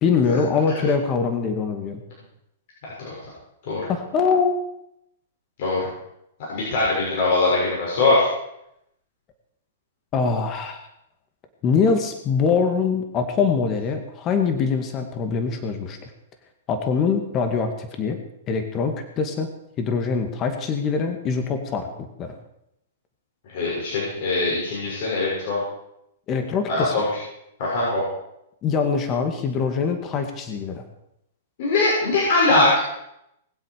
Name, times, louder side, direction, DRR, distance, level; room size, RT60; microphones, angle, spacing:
voice 1, 0.0-2.0 3.9-4.6 10.1-10.9 11.6-16.1 16.7-18.2 18.5-19.5 19.8-22.4 26.3-27.0 28.6-30.8, left 5 dB, 30° left, 6 dB, 2.2 m, -23 dB
voice 2, 2.8-3.1 3.7-3.8 5.6-5.9 6.5-8.3 23.5-25.6 26.7-27.2 27.6-28.0 31.6-32.8, left 2 dB, 60° left, -6 dB, 6.8 m, -21 dB
21.0 x 7.9 x 6.7 m, 0.81 s
hypercardioid pair, 125°, 0 cm